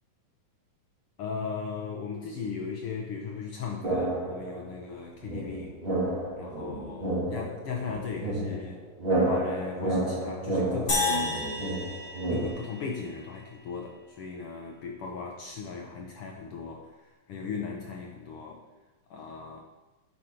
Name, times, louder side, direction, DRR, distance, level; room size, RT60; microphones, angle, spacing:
voice 1, 1.2-5.7 6.4-8.8 9.2-11.3 12.3-18.6 19.1-19.6, left 5 dB, 80° left, 1 dB, 1.3 m, -37 dB
sound 1, 3.8-4.7 5.2-12.5, right 2 dB, 20° right, 1.8 m, -30 dB
sound 2, 10.9-13.3, left 3 dB, 30° left, 2.3 m, -31 dB
9.8 x 5.0 x 4.3 m, 1.1 s
omnidirectional pair, 3.5 m